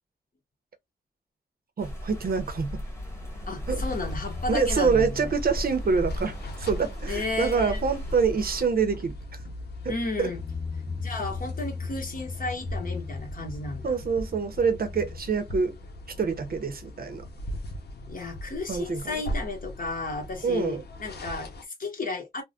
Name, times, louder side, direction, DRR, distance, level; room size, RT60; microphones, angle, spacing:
sound 1, 1.8-8.7, left 1 dB, 15° left, 1.4 m, -35 dB
voice 1, 1.8-2.8 3.7-3.8 4.5-9.4 9.8-9.9 10.2-10.3 13.8-15.7 16.2-17.2 18.7-19.2 20.4-20.8, right 5 dB, 65° right, 0.8 m, -26 dB
voice 2, 3.5-5.3 7.1-7.8 9.9-10.4 11.0-14.0 18.1-22.4, left 3 dB, 55° left, 1.3 m, -33 dB
sound 2, 3.8-21.6, equal, 85° left, 0.8 m, -40 dB
sound 3, 4.0-6.6 6.9-7.2 7.5-7.6 10.1-15.2, left 4 dB, ahead, 0.6 m, -38 dB
3.5 x 2.1 x 2.4 m
wide cardioid pair, 110°, 17 cm